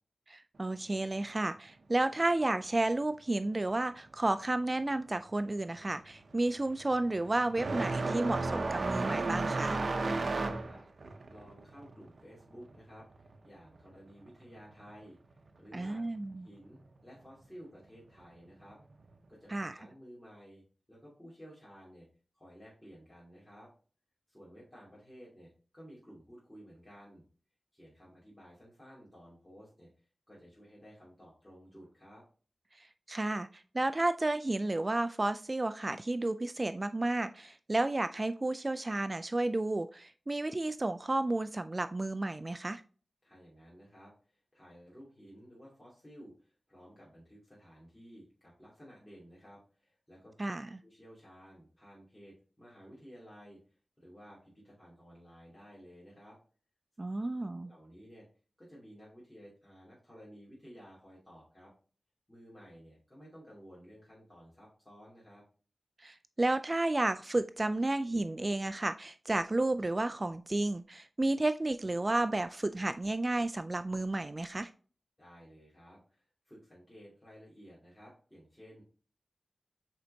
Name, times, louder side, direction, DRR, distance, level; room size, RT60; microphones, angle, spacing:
voice 1, 0.3-9.8 15.7-16.5 19.5-19.8 32.8-42.8 50.4-50.7 57.0-57.7 66.0-74.7, right 2 dB, 35° right, 11 dB, 0.3 m, -32 dB
sound 1, 5.0-5.3 5.6-13.9 14.2-15.3 16.2-16.3 17.2-17.3 19.0-19.1, right 3 dB, 70° right, 0.7 m, -34 dB
voice 2, 10.2-15.2 15.6-16.0 16.4-18.8 19.3-20.6 20.9-22.1 22.3-23.7 24.3-27.2 27.7-29.9 30.3-32.2 43.2-50.3 50.8-53.6 54.0-56.4 57.6-58.3 58.6-61.7 62.3-65.4 75.2-78.8, equal, 15° left, -7 dB, 2.8 m, -54 dB
7.7 x 4.4 x 2.8 m, 0.39 s
wide cardioid pair, 70°, 0 cm